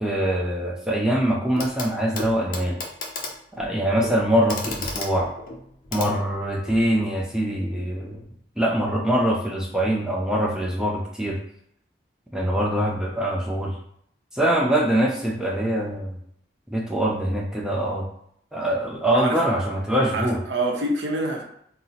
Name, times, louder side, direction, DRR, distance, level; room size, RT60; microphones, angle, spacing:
voice 1, 0.0-2.8 3.6-5.3 5.9-8.2 8.6-11.4 12.3-13.8 14.3-16.2 16.7-18.1 18.5-20.4, right 1 dB, 5° right, -2 dB, 0.3 m, -23 dB
Clock, 1.6-1.9 2.2-6.9 8.1-8.2, left 3 dB, 50° left, 0.5 m, -34 dB
voice 2, 20.1-21.4, right 2 dB, 90° right, 2 dB, 0.7 m, -26 dB
2.7 x 2.0 x 3.8 m, 0.71 s
head